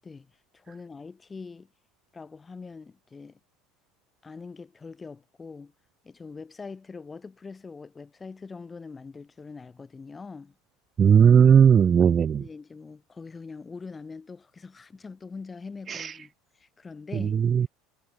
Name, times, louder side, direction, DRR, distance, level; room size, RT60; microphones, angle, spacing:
voice 1, 0.0-1.7 2.1-3.4 4.2-5.7 6.0-10.5 12.4-17.4, left 4 dB, 20° left, 7.5 m, -43 dB
voice 2, 11.0-12.4 15.9-16.1 17.2-17.7, right 7 dB, 35° right, 0.3 m, -18 dB
hypercardioid pair, 95°, 0 cm